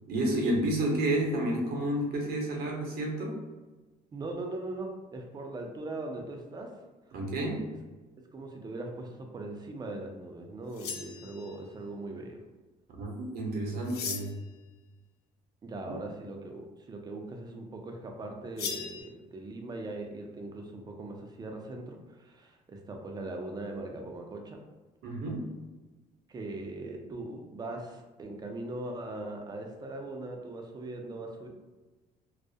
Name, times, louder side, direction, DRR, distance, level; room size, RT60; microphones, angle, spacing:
voice 1, 0.1-3.4 7.1-7.7 13.0-14.3 15.9-16.0 25.0-25.5, right 1 dB, 65° right, 0 dB, 0.7 m, -30 dB
voice 2, 4.1-6.7 8.3-12.4 15.6-24.6 26.3-31.5, right 2 dB, 25° right, 2 dB, 0.4 m, -40 dB
sound 1, 10.7-11.7 13.8-14.5 18.6-19.0, left 6 dB, 70° left, 0.4 m, -38 dB
2.3 x 2.0 x 2.6 m, 1.2 s
cardioid pair, 110°, 17 cm